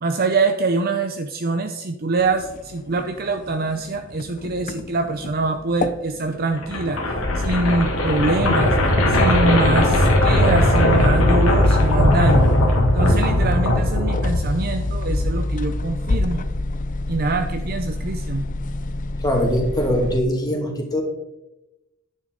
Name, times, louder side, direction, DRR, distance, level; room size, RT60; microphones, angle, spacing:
voice 1, 0.0-7.0 7.4-8.8 9.1-12.5 12.9-16.5 17.1-18.5, right 3 dB, 45° right, 6 dB, 0.6 m, -24 dB
sound 1, 2.2-20.2, left 2 dB, 40° left, 0.6 m, -26 dB
sound 2, 6.6-14.6, left 1 dB, 80° left, 2.1 m, -19 dB
voice 2, 19.2-21.0, equal, 20° left, 0 dB, 2.4 m, -22 dB
10.5 x 9.2 x 4.0 m, 0.93 s
head